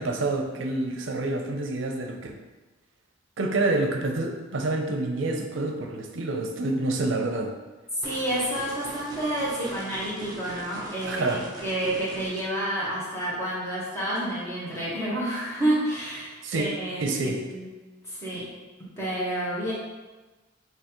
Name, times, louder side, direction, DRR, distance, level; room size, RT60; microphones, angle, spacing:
voice 1, 0.0-2.4 3.4-7.5 11.1-11.5 16.4-16.7 17.0-17.4, right 2 dB, 75° right, 3 dB, 0.6 m, -27 dB
voice 2, 8.0-17.7 18.0-18.5 18.8-19.7, right 1 dB, 15° left, -8 dB, 1.4 m, -29 dB
sound 1, 8.0-12.4, right 1 dB, 20° right, 0.8 m, -41 dB
5.5 x 2.9 x 3.1 m, 1.2 s
head